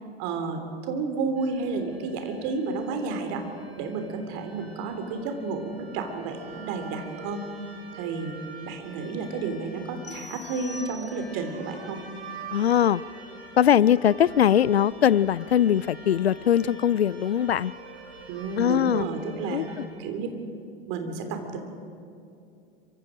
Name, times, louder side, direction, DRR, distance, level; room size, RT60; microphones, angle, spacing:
voice 1, 0.2-0.6 0.9-3.4 3.8-7.4 7.9-8.3 8.6-12.0 18.3-19.6 20.0-20.3 20.9-21.6, right 4 dB, 50° right, 6 dB, 3.4 m, -31 dB
sound 1, 1.4-19.9, right 3 dB, 85° right, 4.0 m, -46 dB
sound 2, 10.0-11.6, left 3 dB, 25° left, 4.2 m, -44 dB
voice 2, 12.5-13.0 13.6-17.7 18.6-19.1 19.5-19.9, left 10 dB, 80° left, 22 dB, 0.5 m, -21 dB
26.5 x 24.5 x 5.1 m, 2.5 s
figure-of-eight pair, 85°, 31 cm